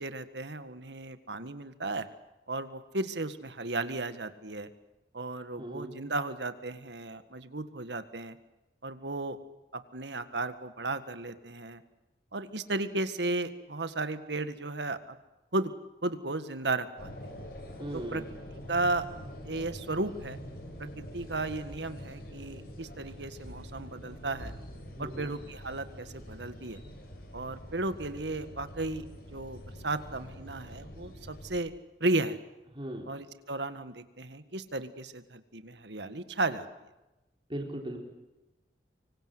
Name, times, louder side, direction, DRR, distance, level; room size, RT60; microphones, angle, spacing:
voice 1, 0.0-2.1 2.5-4.7 5.1-8.4 8.8-9.4 9.7-11.8 12.3-15.2 15.5-15.7 16.0-17.1 17.9-18.2 18.7-19.1 19.4-20.4 20.8-24.5 25.0-26.8 27.3-29.1 29.3-31.7 32.0-32.4 33.1-36.7, right 2 dB, 80° right, 11 dB, 1.8 m, -34 dB
voice 2, 5.6-5.9 17.8-18.3 25.0-25.3 32.7-33.1 37.5-38.0, right 1 dB, 30° right, 1 dB, 4.3 m, -38 dB
sound 1, 17.0-31.6, equal, 55° left, 7.0 m, -45 dB
25.5 x 25.0 x 8.0 m, 1.0 s
head